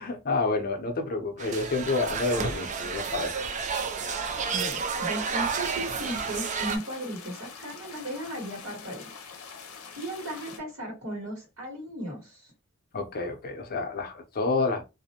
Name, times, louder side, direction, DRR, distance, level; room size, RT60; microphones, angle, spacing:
voice 1, 0.0-3.3 12.9-14.8, left 3 dB, 45° left, 0.6 m, -29 dB
sound 1, 1.4-6.8, right 5 dB, 35° right, 0.4 m, -31 dB
voice 2, 4.5-9.3 10.0-12.5, right 1 dB, 75° right, 1.3 m, -36 dB
sound 2, 5.6-10.6, left 6 dB, 85° left, 0.6 m, -45 dB
2.5 x 2.1 x 2.8 m
head